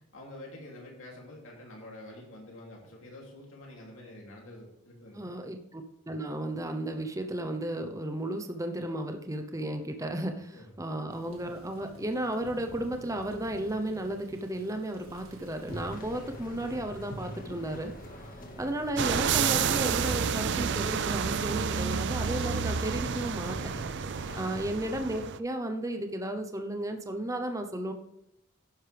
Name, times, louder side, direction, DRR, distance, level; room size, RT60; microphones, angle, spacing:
voice 1, 0.1-5.3 10.5-10.6 24.0-24.5, left 1 dB, 60° left, -2 dB, 2.9 m, -47 dB
voice 2, 5.1-17.9 18.6-23.6 24.3-27.9, right 1 dB, 15° right, 6 dB, 0.8 m, -34 dB
Thunder / Rain, 11.1-16.8, right 1 dB, 75° right, 1.8 m, -51 dB
sound 1, 15.0-24.4, equal, 40° left, 1.8 m, -45 dB
sound 2, 19.0-25.4, right 6 dB, 50° right, 0.4 m, -30 dB
11.0 x 10.5 x 3.4 m, 0.84 s
head